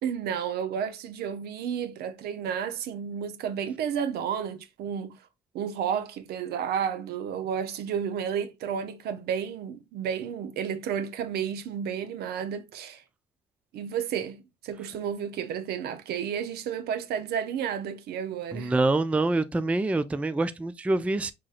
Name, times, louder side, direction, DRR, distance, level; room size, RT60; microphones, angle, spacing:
voice 1, 0.0-5.1 5.5-13.0 13.7-18.7, right 8 dB, 70° right, 0.7 m, -32 dB
voice 2, 18.5-21.3, right 2 dB, 10° right, 0.3 m, -25 dB
6.1 x 2.9 x 2.4 m
cardioid pair, 110°, 17 cm